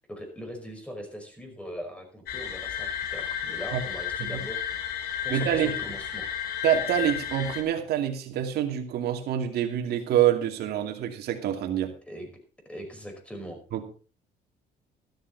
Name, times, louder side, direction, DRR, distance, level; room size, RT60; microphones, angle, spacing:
voice 1, 0.0-4.6 5.2-6.3 12.1-12.3 12.7-13.6, equal, 5° left, 4 dB, 5.4 m, -40 dB
sound 1, 2.3-7.6, left 9 dB, 70° left, 3.2 m, -32 dB
voice 2, 5.3-5.7 6.6-11.9 13.7-13.8, right 10 dB, 70° right, 4 dB, 2.5 m, -26 dB
13.5 x 13.0 x 4.1 m, 0.37 s
cardioid pair, 110°, 17 cm